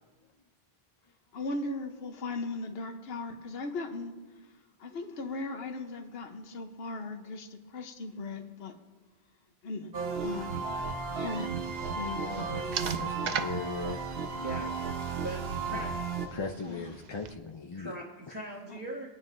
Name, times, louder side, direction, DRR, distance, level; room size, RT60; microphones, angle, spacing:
voice 1, 1.3-4.1 4.8-8.7 9.6-9.9 10.2-10.6 11.1-11.5 11.9-12.5 16.6-17.0 18.7-18.8, left 3 dB, 70° left, 6 dB, 1.1 m, -38 dB
sound 1, 9.9-16.3, right 4 dB, 70° right, 1.1 m, -34 dB
sound 2, 11.6-17.3, right 7 dB, 50° right, 0.6 m, -41 dB
voice 2, 11.8-14.0 15.7-15.8 16.3-17.9, left 4 dB, 35° left, 3 dB, 0.5 m, -39 dB
voice 3, 14.4-15.9 16.3-16.4 17.7-19.1, right 1 dB, 25° right, -6 dB, 1.5 m, -41 dB
23.5 x 9.2 x 2.6 m, 1.3 s
omnidirectional pair, 1.1 m